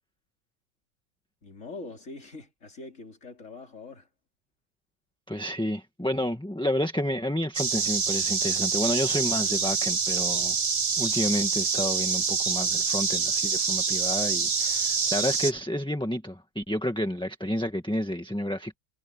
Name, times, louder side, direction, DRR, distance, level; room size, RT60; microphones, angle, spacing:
voice 1, 1.4-4.1, left 3 dB, 60° left, 4.1 m, -43 dB
voice 2, 5.3-10.6 11.0-18.8, left 1 dB, 5° left, 1.5 m, -30 dB
sound 1, 7.5-15.5, right 5 dB, 35° right, 0.7 m, -26 dB
omnidirectional pair, 1.5 m